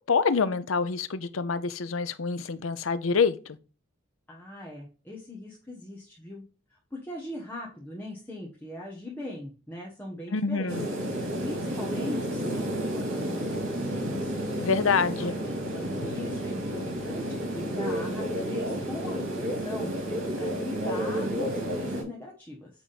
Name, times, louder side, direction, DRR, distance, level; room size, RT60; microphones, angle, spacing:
voice 1, 0.0-3.4 10.3-10.9 14.6-15.3, left 5 dB, 80° left, 0.6 m, -26 dB
voice 2, 4.3-6.4 6.9-10.8 11.4-14.3 15.0-19.9 20.4-22.7, left 1 dB, 10° left, 1.2 m, -40 dB
sound 1, 10.7-22.0, equal, 70° right, 2.9 m, -31 dB
8.9 x 3.6 x 4.2 m
head